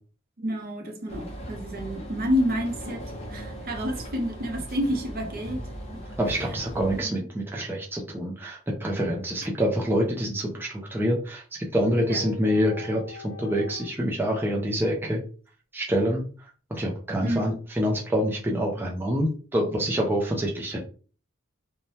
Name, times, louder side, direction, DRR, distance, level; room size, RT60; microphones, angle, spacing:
voice 1, 0.4-3.0 3.3-5.6 5.9-6.0 6.9-7.1 12.1-12.2 17.2-17.5, equal, 45° right, 0.7 m, -29 dB
sound 1, 1.1-7.0, equal, 30° left, 0.6 m, -38 dB
voice 2, 6.2-11.4 11.7-15.2 15.7-16.2 16.7-20.8, equal, 10° right, 0.4 m, -26 dB
sound 2, 10.8-10.9 11.8-13.9, left 4 dB, 85° right, 0.7 m, -41 dB
3.1 x 2.2 x 2.7 m
head